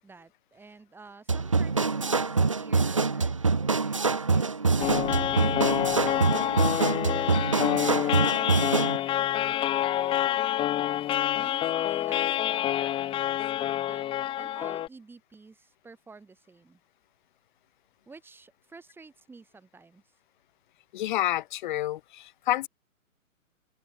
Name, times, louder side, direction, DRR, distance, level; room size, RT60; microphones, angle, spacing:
voice 1, 0.0-5.4 6.0-7.5 7.8-8.8 9.1-10.4 11.3-14.0 14.4-16.8 18.1-20.0, right 4 dB, 5° right, 6.7 m, -50 dB
sound 1, 1.3-9.0, right 4 dB, 25° right, 0.4 m, -25 dB
sound 2, 4.8-14.9, left 12 dB, 10° left, 2.0 m, -27 dB
voice 2, 20.9-22.7, left 14 dB, 35° left, 5.2 m, -29 dB
open air
figure-of-eight pair, 135°, 42 cm